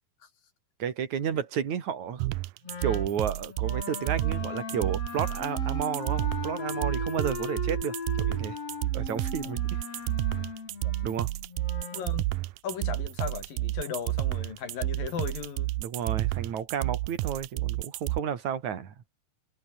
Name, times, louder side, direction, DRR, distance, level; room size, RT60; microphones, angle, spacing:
voice 1, 0.8-2.3 2.8-8.6 8.9-9.8 11.0-11.3 15.8-19.2, right 8 dB, 55° right, 3.6 m, -32 dB
sound 1, 2.2-18.2, right 18 dB, 75° right, 2.2 m, -30 dB
Wind instrument woodwind instrument, 2.6-12.1, left 5 dB, 45° left, 4.6 m, -38 dB
voice 2, 11.9-15.7, left 7 dB, 75° left, 5.3 m, -37 dB
omnidirectional pair, 4.0 m